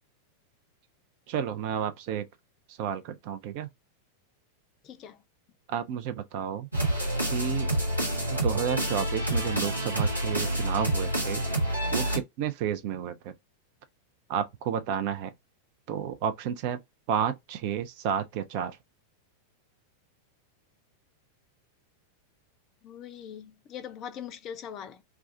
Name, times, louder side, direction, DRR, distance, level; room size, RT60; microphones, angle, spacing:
voice 1, 1.3-2.2 2.8-3.7 5.7-6.7 7.2-7.7 8.3-11.4 11.9-13.3 14.3-15.3 15.9-16.8 17.1-18.8, right 8 dB, 45° right, 0.5 m, -31 dB
voice 2, 4.8-5.2 22.8-25.0, left 8 dB, 35° left, 0.4 m, -41 dB
sound 1, 6.7-12.2, right 1 dB, 85° right, 0.9 m, -28 dB
2.4 x 2.3 x 2.6 m
figure-of-eight pair, 90°, 0 cm